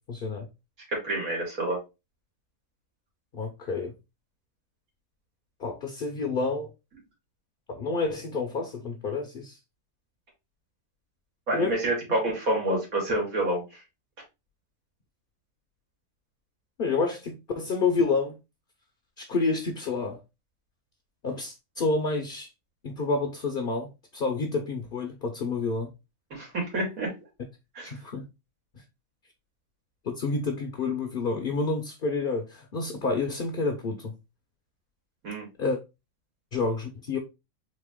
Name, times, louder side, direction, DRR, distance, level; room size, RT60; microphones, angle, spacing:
voice 1, 0.1-0.5 3.3-3.9 5.6-6.7 7.7-9.6 11.5-11.8 12.7-12.8 16.8-18.4 19.2-20.2 21.2-22.5 22.8-25.9 27.9-28.2 30.0-34.1 35.6-35.8 36.5-37.2, left 3 dB, 50° left, 0.8 m, -29 dB
voice 2, 0.9-1.8 11.5-13.6 26.3-27.1 27.7-27.9 35.2-35.5, right 1 dB, 85° right, 2.5 m, -28 dB
4.2 x 2.9 x 3.5 m
omnidirectional pair, 1.4 m